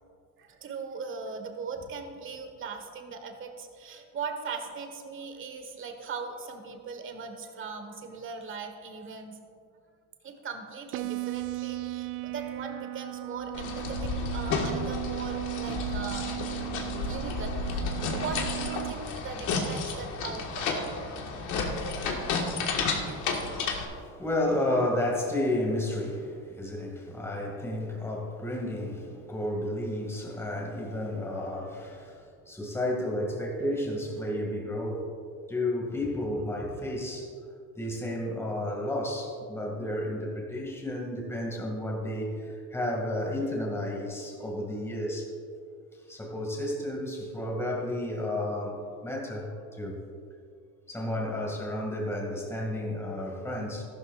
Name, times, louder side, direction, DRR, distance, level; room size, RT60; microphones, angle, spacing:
voice 1, 0.4-9.4 10.2-16.3 17.0-20.7 21.0-21.3 21.7-21.8 22.4-22.7, right 5 dB, 35° right, 5 dB, 1.4 m, -39 dB
sound 1, 10.9-18.9, right 21 dB, 65° right, 0.5 m, -36 dB
sound 2, 13.5-23.9, left 4 dB, 65° left, 1.8 m, -32 dB
voice 2, 22.5-35.1 35.5-37.3 37.8-45.3 46.1-50.0 50.9-53.8, left 1 dB, 10° left, -1 dB, 2.3 m, -32 dB
14.0 x 12.5 x 2.5 m, 2.3 s
cardioid pair, 125°, 33 cm